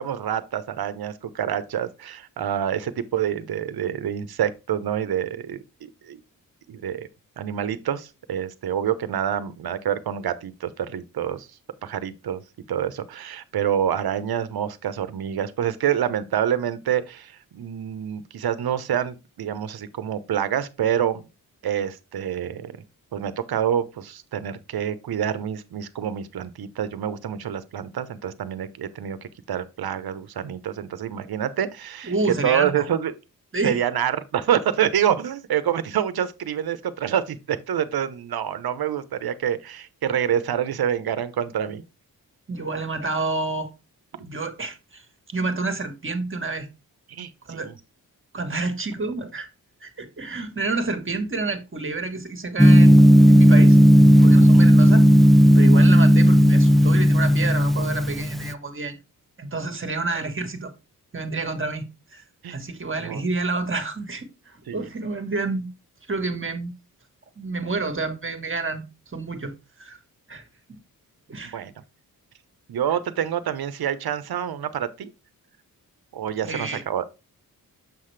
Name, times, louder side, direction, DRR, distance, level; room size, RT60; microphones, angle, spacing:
voice 1, 0.0-6.2 6.7-7.1 7.4-11.5 11.8-12.4 12.7-21.2 21.6-22.7 23.1-32.1 32.4-33.1 33.6-41.8 44.1-44.2 47.1-47.7 54.4-54.7 62.4-62.6 63.0-63.2 64.7-64.9 71.4-71.7 72.7-75.1 76.1-77.0, right 9 dB, 80° right, 0.9 m, -27 dB
voice 2, 32.1-32.9 33.5-33.8 42.5-43.7 44.2-46.7 47.5-47.7 48.3-49.5 49.8-53.0 53.3-53.8 54.2-55.1 55.5-59.0 59.4-60.7 61.1-62.2 62.5-65.7 66.1-66.7 67.4-68.8 69.1-69.5 69.8-70.0 70.3-70.4 70.7-70.8 71.3-71.6 76.4-76.8, right 3 dB, 35° right, 1.4 m, -29 dB
Gong, 52.6-58.5, equal, ahead, 0.4 m, -13 dB
7.3 x 5.8 x 3.3 m
wide cardioid pair, 110°, 36 cm